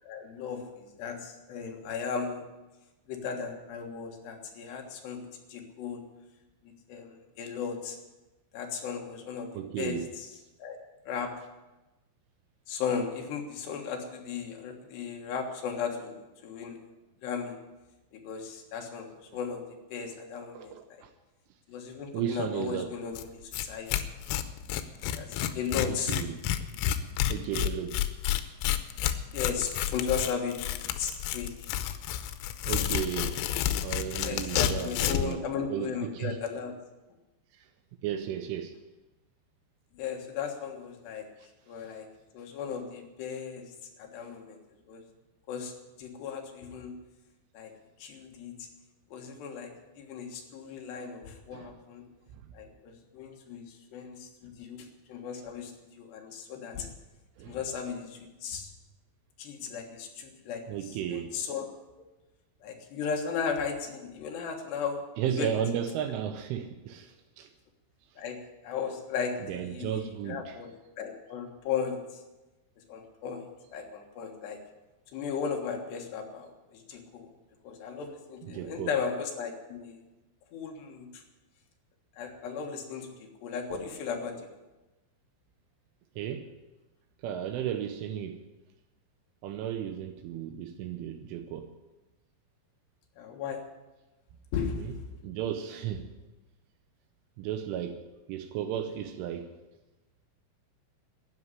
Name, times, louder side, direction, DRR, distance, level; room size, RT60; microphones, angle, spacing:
voice 1, 0.0-2.4 3.1-6.0 6.6-8.0 8.5-9.5 9.8-10.3 10.6-10.8 11.0-11.3 12.7-16.8 17.2-17.6 18.1-19.6 19.9-21.0 21.7-23.9 25.2-26.1 29.3-31.7 34.2-36.7 39.9-41.3 41.7-42.1 42.3-43.7 44.0-44.6 44.9-45.0 45.5-45.7 46.0-47.0 47.5-47.7 48.0-48.7 49.1-52.0 52.5-56.9 57.4-58.7 59.4-60.6 61.1-61.7 62.6-65.5 68.2-70.7 71.0-72.2 72.9-74.6 75.1-77.3 77.6-80.0 80.5-81.2 82.2-84.4 93.2-93.6 94.5-94.9, left 6 dB, 65° left, 3 dB, 3.2 m, -36 dB
voice 2, 9.5-10.1 20.5-21.1 22.1-23.0 25.9-26.4 27.3-28.0 32.7-33.4 33.8-36.4 37.5-37.7 38.0-38.7 41.4-41.5 51.5-51.8 52.3-52.4 57.4-57.6 60.7-61.4 65.2-67.5 69.4-70.6 78.4-79.0 86.2-86.5 87.2-88.4 89.4-91.7 94.7-94.9 95.2-96.1 97.4-99.5, right 9 dB, 80° right, 8 dB, 3.1 m, -34 dB
Tearing, 23.2-23.3 23.5-23.6 23.9-35.3, left 11 dB, 85° left, 3.5 m, -30 dB
13.0 x 9.5 x 9.9 m, 1.1 s
omnidirectional pair, 5.9 m